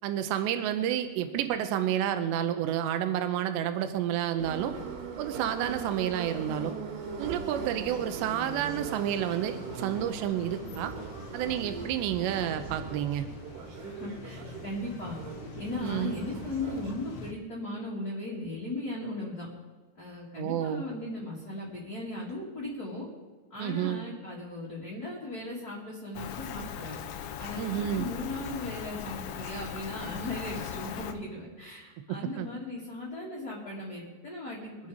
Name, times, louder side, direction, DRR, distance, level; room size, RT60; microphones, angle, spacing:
voice 1, 0.0-4.8 5.2-6.7 7.2-10.9 11.3-13.3 15.8-16.1 20.4-20.8 23.6-24.0 27.6-28.1 32.1-32.5, right 10 dB, 85° right, 8 dB, 3.1 m, -30 dB
Subway metro underground, 4.4-16.9, right 5 dB, 70° right, 3.9 m, -40 dB
sound 1, 7.8-17.3, left 4 dB, 60° left, 1.4 m, -47 dB
voice 2, 13.8-15.2 15.6-19.5 19.9-23.1 23.5-26.9 27.4-34.9, left 2 dB, 30° left, -5 dB, 2.2 m, -37 dB
Rain, 26.2-31.1, left 8 dB, 75° left, 2.8 m, -39 dB
23.5 x 9.1 x 5.0 m, 1.4 s
omnidirectional pair, 4.9 m